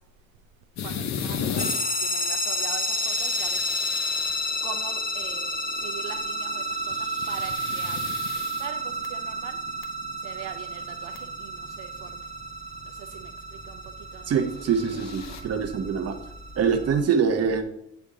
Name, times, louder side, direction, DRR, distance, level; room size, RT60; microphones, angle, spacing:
sound 1, 0.8-1.8 2.7-4.7 6.7-9.1 9.7-9.8 10.8-10.9 11.1-11.2 14.5-15.4, left 7 dB, 65° left, 0.7 m, -35 dB
voice 1, 0.8-1.7 2.0-3.6 4.6-5.6 5.8-6.6 7.3-8.0 8.6-8.8 9.1-9.6 10.2-12.1 13.0-13.3 13.7-13.8 14.1-14.3, right 10 dB, 85° right, 6 dB, 0.5 m, -41 dB
sound 2, 1.6-17.0, equal, 30° left, 1.2 m, -31 dB
voice 2, 14.3-16.1 16.6-17.6, right 6 dB, 55° right, 5 dB, 0.9 m, -24 dB
9.7 x 3.5 x 3.7 m, 0.81 s
cardioid pair, 90°, 30 cm